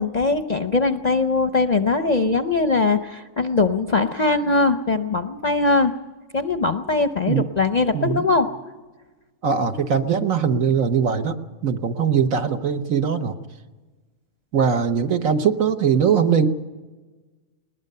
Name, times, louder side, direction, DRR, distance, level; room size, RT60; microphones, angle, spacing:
voice 1, 0.0-5.9 6.3-8.5, left 3 dB, 40° left, 8 dB, 0.6 m, -21 dB
voice 2, 9.4-11.3 11.6-13.4 14.5-16.5, right 7 dB, 70° right, 7 dB, 1.5 m, -21 dB
20.5 x 20.0 x 6.7 m, 1.3 s
omnidirectional pair, 1.5 m